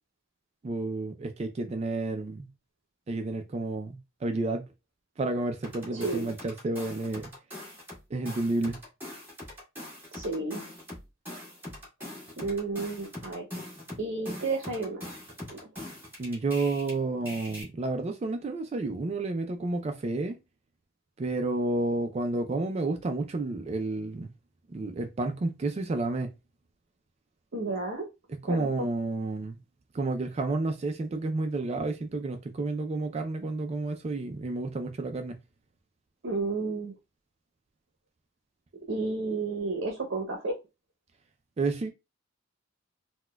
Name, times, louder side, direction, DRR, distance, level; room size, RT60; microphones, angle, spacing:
voice 1, 0.6-2.5 3.1-4.6 5.2-7.3 8.1-8.8 16.2-20.4 21.2-24.3 24.7-26.3 28.3-29.6 29.9-35.3 41.6-41.9, right 2 dB, 30° right, 0.3 m, -30 dB
sound 1, 5.6-8.0 8.3-16.9 17.3-17.6, left 1 dB, 10° right, 1.8 m, -42 dB
voice 2, 5.9-6.3 10.1-10.6 12.4-13.4 14.0-15.2 15.5-15.6 27.5-28.1 28.5-28.9 36.2-36.9 38.9-40.5, right 3 dB, 65° right, 0.7 m, -32 dB
4.1 x 2.2 x 2.2 m
head